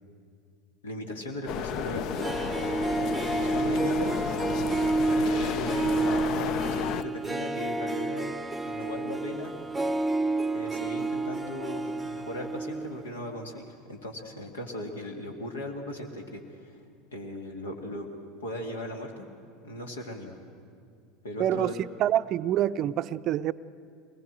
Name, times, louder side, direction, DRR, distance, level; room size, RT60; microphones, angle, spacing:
voice 1, 0.8-2.3 3.3-4.1 5.2-6.1 6.4-8.3 8.6-9.5 10.5-16.8 17.1-18.1 18.4-19.3 19.6-20.4 21.2-21.8, left 1 dB, 80° left, 3 dB, 2.4 m, -38 dB
sound 1, 1.5-7.0, left 10 dB, 50° left, 0.5 m, -33 dB
Harp, 2.0-13.0 13.3-13.4, right 2 dB, 10° right, 0.8 m, -29 dB
voice 2, 21.4-23.5, right 11 dB, 45° right, 14 dB, 0.5 m, -26 dB
23.0 x 20.0 x 7.6 m, 2.3 s
figure-of-eight pair, 75°, 0 cm